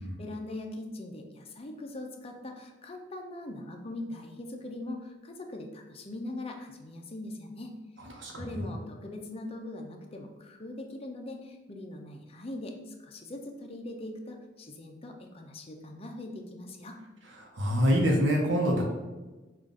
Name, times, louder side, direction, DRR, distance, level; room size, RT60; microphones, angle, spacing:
voice 1, 0.2-7.7 8.1-17.0, left 2 dB, 30° left, 3 dB, 0.5 m, -41 dB
voice 2, 8.1-8.4 17.4-18.8, equal, 70° right, -1 dB, 0.8 m, -26 dB
5.6 x 2.4 x 3.7 m, 1.2 s
head